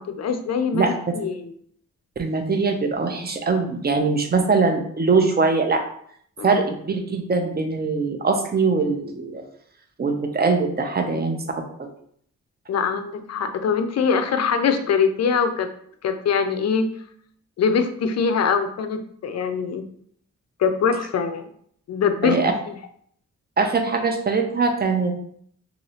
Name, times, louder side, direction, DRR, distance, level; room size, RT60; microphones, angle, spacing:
voice 1, 0.0-1.5 6.4-6.6 11.1-11.2 12.7-15.7 16.0-16.9 17.6-19.8 20.6-21.5 21.9-22.4 22.7-22.8, left 6 dB, 55° left, 8 dB, 0.4 m, -23 dB
voice 2, 2.2-5.8 6.4-9.4 10.0-11.4 11.8-11.9 22.2-22.5 23.6-25.2, right 4 dB, 30° right, 5 dB, 0.5 m, -22 dB
3.0 x 2.7 x 2.7 m, 0.65 s
cardioid pair, 85°, 31 cm